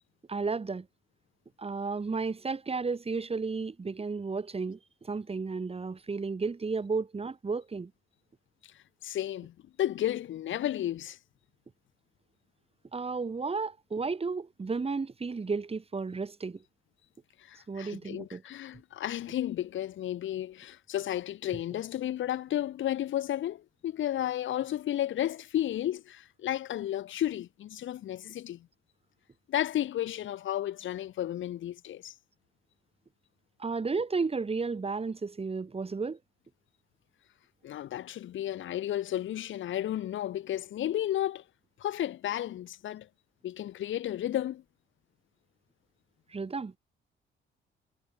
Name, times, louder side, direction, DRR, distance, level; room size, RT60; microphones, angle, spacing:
voice 1, 0.3-0.9 1.6-7.9 12.9-16.6 17.7-18.4 33.6-36.2 46.3-46.7, right 4 dB, 30° right, 5.1 m, -33 dB
voice 2, 9.0-11.2 17.4-28.7 29.5-32.1 37.6-41.4 41.8-43.1 43.4-44.6, left 12 dB, 75° left, 4.8 m, -33 dB
cardioid pair, 90°, 20 cm